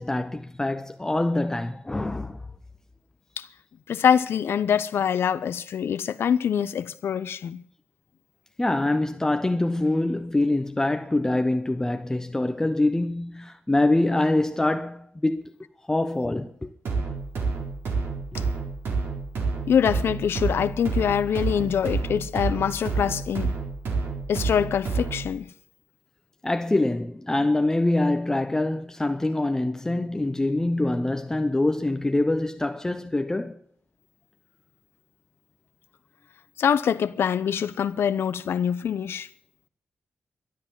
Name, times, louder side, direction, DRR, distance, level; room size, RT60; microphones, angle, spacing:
voice 1, 0.0-2.4 8.6-15.5 15.9-16.7 26.4-33.6, left 2 dB, 15° left, 0.8 m, -24 dB
voice 2, 3.9-7.6 19.7-23.5 24.3-25.5 36.6-39.3, left 8 dB, 85° left, 0.8 m, -24 dB
sound 1, 16.8-25.3, right 4 dB, 85° right, 4.1 m, -29 dB
12.5 x 11.0 x 8.8 m
wide cardioid pair, 115°, 4 cm